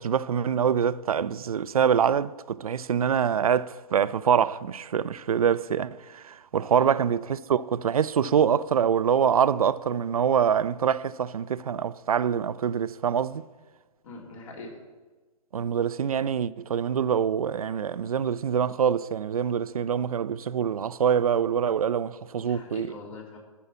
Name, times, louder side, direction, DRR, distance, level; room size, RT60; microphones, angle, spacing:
voice 1, 0.0-13.4 15.5-22.9, right 8 dB, 80° right, 0.5 m, -25 dB
voice 2, 14.0-14.7 22.3-23.4, left 3 dB, 65° left, 3.5 m, -42 dB
13.0 x 5.5 x 7.3 m
hypercardioid pair, 120°, 18 cm